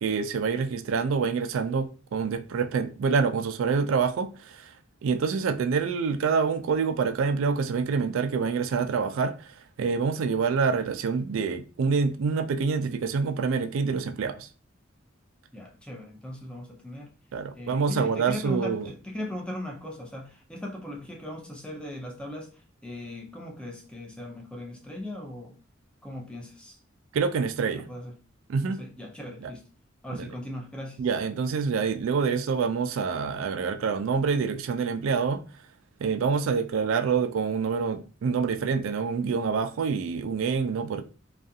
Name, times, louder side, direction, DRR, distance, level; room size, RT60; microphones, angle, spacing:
voice 1, 0.0-4.7 5.0-14.5 17.3-18.9 27.1-27.9 28.5-28.8 29.4-29.5 30.1-30.3 31.0-35.4 36.0-41.0, right 5 dB, 75° right, 0.3 m, -26 dB
voice 2, 15.5-17.1 17.6-25.6 26.0-26.8 27.7-28.1 28.6-29.6 30.0-31.0, left 1 dB, 5° left, 0.5 m, -38 dB
2.4 x 2.3 x 2.6 m
head